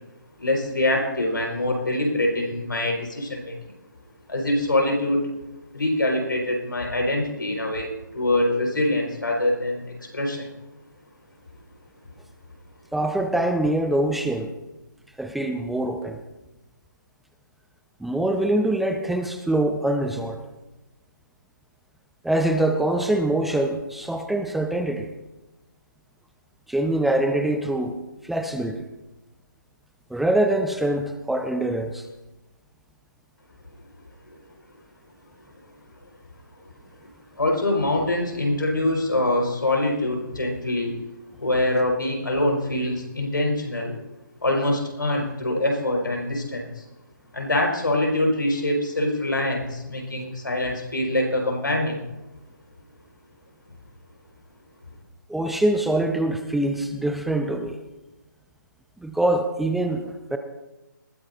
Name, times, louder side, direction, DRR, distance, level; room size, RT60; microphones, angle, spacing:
voice 1, 0.4-3.7 4.3-5.2 5.7-10.5 34.3-34.4 37.3-40.9 41.4-43.9 44.4-46.8 47.3-52.0, left 1 dB, 80° left, 0 dB, 4.9 m, -24 dB
voice 2, 12.9-14.5 15.2-16.2 18.0-20.4 22.2-25.1 26.7-28.0 28.2-28.8 30.1-32.1 55.3-57.8 59.0-60.4, right 1 dB, ahead, 6 dB, 0.4 m, -24 dB
20.5 x 14.0 x 2.7 m, 1.0 s
figure-of-eight pair, 150°, 11 cm